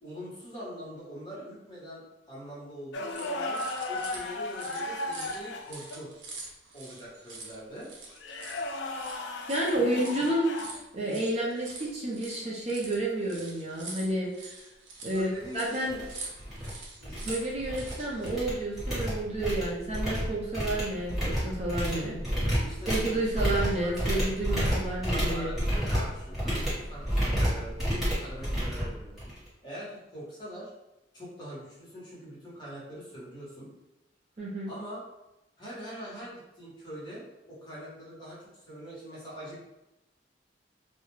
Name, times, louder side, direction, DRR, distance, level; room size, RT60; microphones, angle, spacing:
voice 1, 0.0-6.1 6.7-7.9 9.7-10.3 15.1-16.1 17.0-17.3 22.6-24.2 25.0-29.2 29.6-30.7 31.1-33.7 34.7-35.0 35.6-37.2 37.5-39.6, equal, 25° left, -7 dB, 1.0 m, -43 dB
sound 1, 2.9-6.0 8.1-10.8 13.2-13.4 15.6-16.0 18.9-19.1 21.1-21.4, left 2 dB, 70° left, 0.3 m, -36 dB
sound 2, 3.1-18.3, right 3 dB, 85° right, 0.6 m, -45 dB
voice 2, 9.5-10.5 10.9-14.5 15.0-16.0 17.2-22.6 22.9-25.5 34.4-34.7, right 1 dB, 35° right, -4 dB, 0.5 m, -30 dB
sound 3, 15.4-15.5 15.9-16.1 16.4-16.7 17.0-17.9 18.2-29.5, equal, ahead, 1.1 m, -30 dB
2.3 x 2.1 x 3.0 m, 0.97 s
head